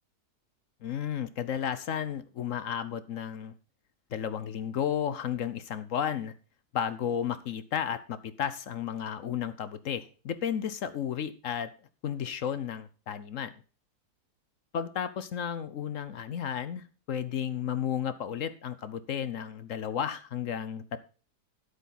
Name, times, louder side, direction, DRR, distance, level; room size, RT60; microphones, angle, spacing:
voice 1, 0.8-3.5 4.1-6.3 6.7-11.7 12.0-13.5 14.7-21.0, left 8 dB, 60° left, 13 dB, 1.0 m, -33 dB
11.5 x 8.1 x 4.2 m, 0.36 s
omnidirectional pair, 1.7 m